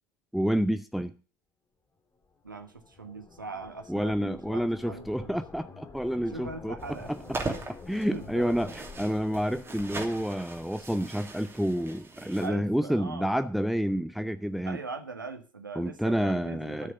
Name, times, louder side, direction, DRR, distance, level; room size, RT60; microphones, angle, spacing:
voice 1, 0.3-1.1 3.9-7.0 7.9-14.8 15.8-16.9, equal, ahead, 0.6 m, -29 dB
sound 1, 2.2-11.5, left 4 dB, 25° left, 2.6 m, -49 dB
voice 2, 2.4-5.3 6.2-7.1 8.1-8.7 12.4-13.4 14.6-16.9, right 3 dB, 85° right, 1.3 m, -41 dB
sound 2, 6.8-12.5, right 3 dB, 25° right, 2.9 m, -40 dB
13.0 x 6.4 x 6.6 m
figure-of-eight pair, 65°, 10 cm